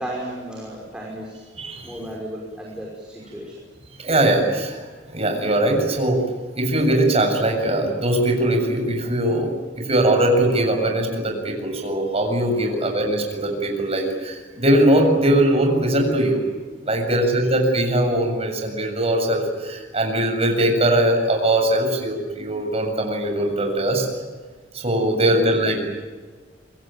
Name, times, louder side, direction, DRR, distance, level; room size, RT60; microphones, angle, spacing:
voice 1, 0.0-1.4 1.8-3.6 17.0-17.3 25.3-25.5, right 1 dB, 5° right, -3 dB, 5.6 m, -34 dB
voice 2, 1.6-1.9 4.0-6.3 6.6-16.4 16.8-24.1 24.7-25.8, right 1 dB, 35° right, 3 dB, 7.3 m, -21 dB
27.0 x 23.5 x 9.2 m, 1.4 s
head